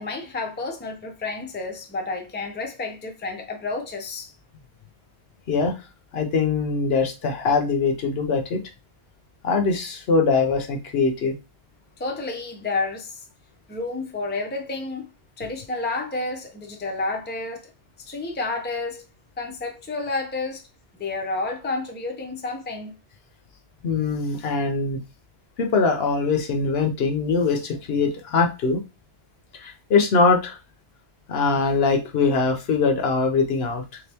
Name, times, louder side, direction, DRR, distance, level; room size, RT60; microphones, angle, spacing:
voice 1, 0.0-4.3 12.0-13.2 13.7-15.1 15.4-17.7 18.1-19.0 19.4-20.6 21.0-22.9, left 3 dB, 15° left, 0.5 m, -30 dB
voice 2, 6.1-8.6 9.4-11.3 23.8-25.0 25.6-28.8 29.6-30.6 31.3-34.0, left 4 dB, 65° left, 0.9 m, -22 dB
3.4 x 2.9 x 3.4 m
omnidirectional pair, 1.1 m